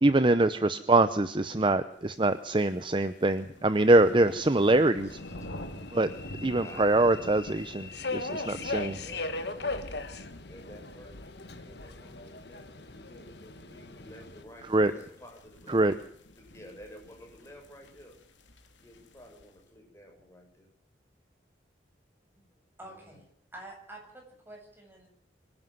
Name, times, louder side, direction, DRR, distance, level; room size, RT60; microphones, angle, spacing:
voice 1, 0.0-5.1 5.9-6.1 6.4-9.0 14.7-14.9 15.7-15.9, right 2 dB, 25° right, 12 dB, 0.8 m, -24 dB
sound 1, 2.1-19.6, left 1 dB, 90° left, 2.8 m, -48 dB
Subway metro underground, 3.9-14.4, left 3 dB, 65° left, 1.9 m, -39 dB
voice 2, 5.0-5.5 6.5-7.1 7.8-7.9 8.9-9.9 10.5-15.9 16.4-18.1 18.8-20.7 22.8-23.2, equal, 15° left, 1 dB, 7.1 m, -51 dB
voice 3, 22.8-23.3 23.5-25.1, right 1 dB, 10° right, 1 dB, 7.5 m, -47 dB
24.5 x 11.5 x 9.4 m, 0.66 s
head